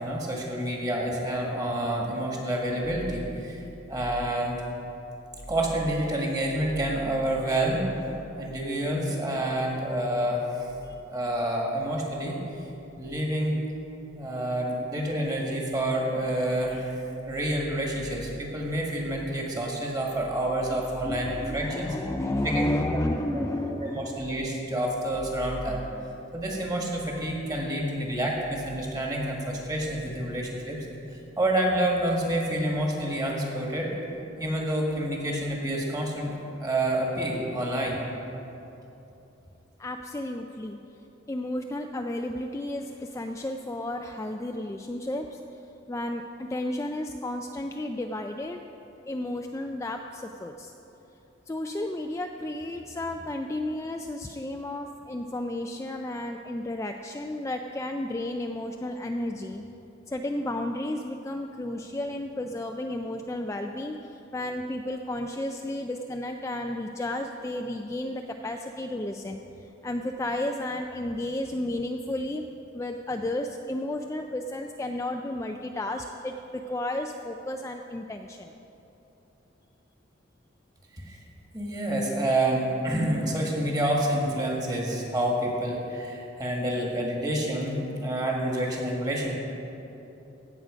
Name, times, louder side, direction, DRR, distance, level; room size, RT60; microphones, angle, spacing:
voice 1, 0.0-4.6 5.5-7.9 8.3-10.7 11.1-12.4 13.0-13.6 14.2-17.0 17.3-22.0 22.4-22.8 23.3-23.4 23.8-25.8 26.3-30.8 31.1-33.9 34.4-38.0 81.1-81.2 81.5-89.3, right 1 dB, 20° right, -1 dB, 1.8 m, -28 dB
voice 2, 20.7-24.2 39.8-40.8 41.3-45.4 45.9-48.6 49.1-50.7 51.5-59.6 60.1-72.4 72.7-78.5, left 1 dB, 15° left, 3 dB, 0.3 m, -32 dB
17.0 x 7.6 x 5.1 m, 3.0 s
head